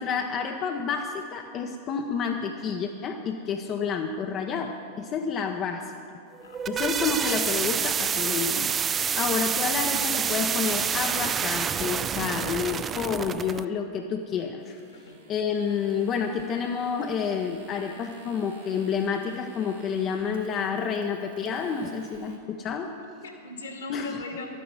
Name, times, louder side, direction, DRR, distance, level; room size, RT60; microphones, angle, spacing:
voice 1, 0.0-5.9 6.7-14.8 15.3-22.9 23.9-24.2, left 6 dB, 30° left, 4 dB, 0.7 m, -29 dB
sound 1, 6.3-13.6, right 7 dB, 20° right, 0.3 m, -28 dB
sound 2, 14.6-22.4, right 4 dB, 60° right, 2.4 m, -55 dB
voice 2, 14.9-15.3 22.9-24.6, left 2 dB, 70° left, 3 dB, 1.9 m, -40 dB
12.5 x 9.9 x 6.8 m, 2.5 s
figure-of-eight pair, 90°, 0 cm